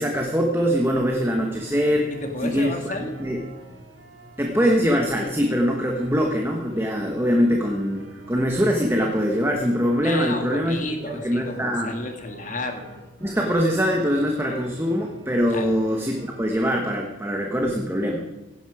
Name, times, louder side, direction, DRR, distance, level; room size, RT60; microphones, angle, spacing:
voice 1, 0.0-2.1 2.4-3.4 4.4-10.8 11.0-11.9 13.2-18.2, equal, 10° right, 1 dB, 1.2 m, -23 dB
sound 1, 0.6-16.9, right 1 dB, 75° right, 2.9 m, -46 dB
voice 2, 2.1-3.2 10.0-12.8 15.5-15.7, left 2 dB, 40° left, 4 dB, 2.0 m, -32 dB
16.5 x 10.5 x 4.9 m, 1.2 s
head